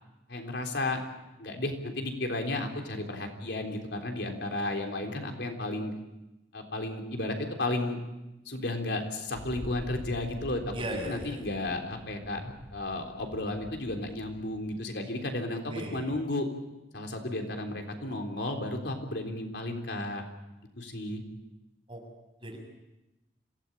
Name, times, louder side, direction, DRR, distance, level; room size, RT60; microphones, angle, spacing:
voice 1, 0.3-1.0 1.4-5.9 6.5-8.0 8.5-10.6 11.1-16.5 16.9-20.2 20.8-21.2, left 2 dB, 80° left, 3 dB, 3.6 m, -33 dB
Wind, 9.3-14.8, equal, 15° left, 4.4 m, -47 dB
voice 2, 10.7-11.5 15.7-16.0 21.9-22.0 22.4-22.6, equal, 30° right, 1 dB, 6.9 m, -36 dB
26.5 x 17.5 x 8.9 m, 0.98 s
head